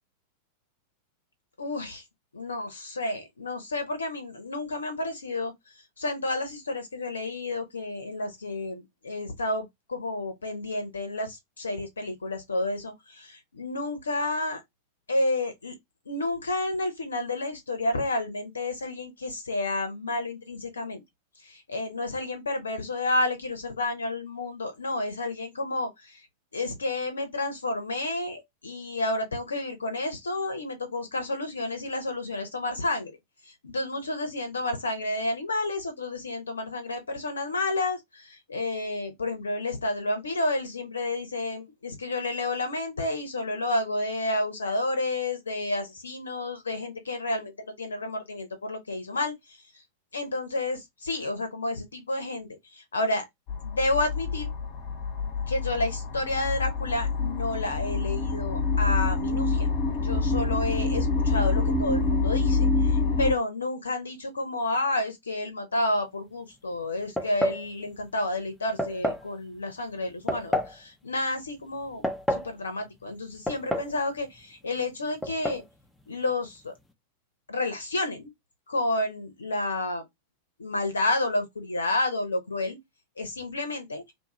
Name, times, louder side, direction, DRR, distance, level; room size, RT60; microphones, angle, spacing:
voice 1, 1.6-2.0 2.3-5.5 6.0-14.6 15.1-15.7 16.1-21.0 21.4-26.2 26.5-33.2 33.5-49.3 50.1-53.2 53.6-54.5 55.5-59.7 60.0-72.0 72.3-75.6 76.1-76.7 77.5-78.3 78.7-80.0 80.6-82.8 83.2-84.0, left 2 dB, 75° left, 0.7 m, -30 dB
sound 1, 53.5-63.3, left 3 dB, 45° left, 0.9 m, -26 dB
sound 2, 67.2-67.7 68.8-69.3 70.3-70.8 71.8-72.5 73.5-74.0 74.2-74.3 75.2-75.6, equal, 5° left, 0.6 m, -28 dB
2.8 x 2.3 x 2.8 m
figure-of-eight pair, 90°, 0 cm